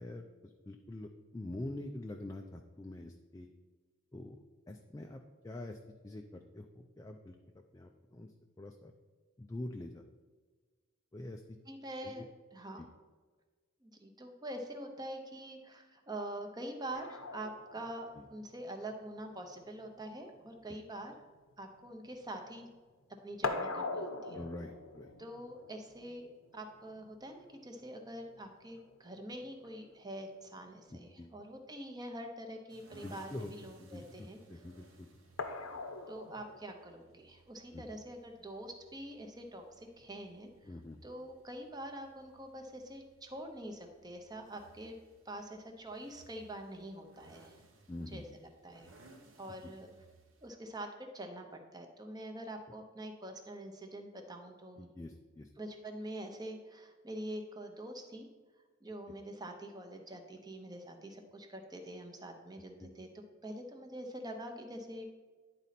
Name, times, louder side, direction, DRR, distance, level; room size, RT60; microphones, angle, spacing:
voice 1, 0.0-3.5 4.1-4.4 4.7-5.8 6.0-8.9 9.4-10.0 11.1-11.6 12.0-12.3 12.8-12.9 18.2-18.3 24.3-25.1 30.9-31.3 33.0-33.5 33.8-35.1 37.7-37.8 40.6-41.0 47.9-48.4 49.6-49.7 54.8-55.5 62.8-62.9, left 1 dB, 15° left, 3 dB, 0.3 m, -45 dB
voice 2, 11.7-12.2 12.5-12.9 13.8-21.1 21.6-22.7 23.2-24.4 25.2-34.6 36.1-40.5 41.0-44.9 45.2-47.5 48.1-48.9 49.4-49.9 50.4-54.9 55.6-58.3 58.8-65.0, right 1 dB, 20° right, 4 dB, 0.7 m, -45 dB
sound 1, 16.9-22.6 22.9-29.9 31.3-31.4 31.8-31.9 35.4-36.6, left 3 dB, 80° left, 0.7 m, -43 dB
sound 2, 32.7-50.5, right 2 dB, 70° right, 1.0 m, -63 dB
10.5 x 4.1 x 4.1 m, 1.4 s
head